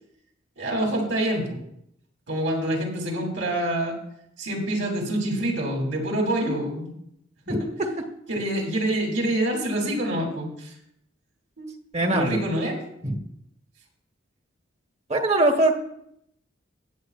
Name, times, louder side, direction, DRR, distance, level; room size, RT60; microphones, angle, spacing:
voice 1, 0.6-1.6 2.3-4.0 4.4-6.9 7.5-7.7 8.3-10.7 11.6-11.7 12.1-12.8, right 1 dB, 70° right, 0 dB, 3.0 m, -26 dB
voice 2, 11.9-12.4 13.0-13.2 15.1-15.7, right 2 dB, 35° right, 5 dB, 1.4 m, -21 dB
20.0 x 7.9 x 2.5 m, 0.74 s
head